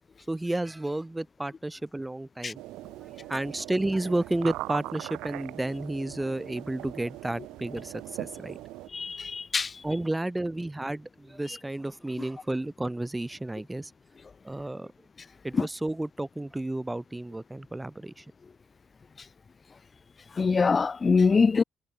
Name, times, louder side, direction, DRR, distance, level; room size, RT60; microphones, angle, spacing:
voice 1, 0.3-2.6 3.1-8.6 9.8-13.9 14.4-14.9 15.4-18.3, right 1 dB, 15° right, 5.3 m, -32 dB
sound 1, 2.5-8.9, right 18 dB, 90° right, 1.5 m, -40 dB
voice 2, 8.9-9.7 15.5-15.7 20.4-21.6, left 5 dB, 40° left, 0.4 m, -23 dB
supercardioid pair, 65°, 0 cm